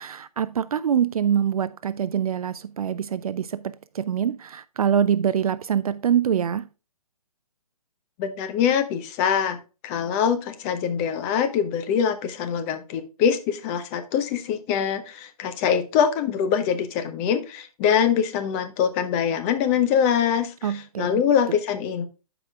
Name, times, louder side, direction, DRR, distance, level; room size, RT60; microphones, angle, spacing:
voice 1, 0.0-6.7 20.6-21.2, right 8 dB, 70° right, 0.4 m, -24 dB
voice 2, 8.2-9.6 9.8-22.1, left 8 dB, 25° left, 0.7 m, -24 dB
12.5 x 5.0 x 2.3 m
figure-of-eight pair, 135°, 19 cm